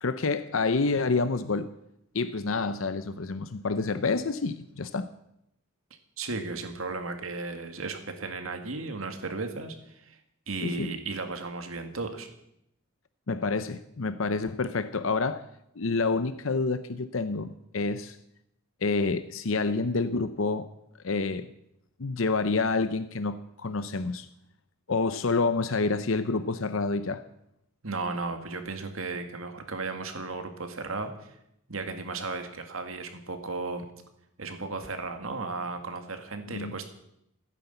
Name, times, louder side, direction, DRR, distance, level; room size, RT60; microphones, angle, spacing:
voice 1, 0.0-1.7 2.1-5.1 10.6-10.9 13.3-15.5 15.8-18.2 18.8-20.7 21.0-21.5 22.0-24.3 24.9-27.2 36.5-36.8, left 3 dB, 70° left, 0.7 m, -28 dB
voice 2, 6.2-10.2 10.5-12.3 27.8-31.4 31.7-33.9 34.4-36.9, right 3 dB, 75° right, 2.1 m, -35 dB
15.5 x 10.0 x 8.0 m
head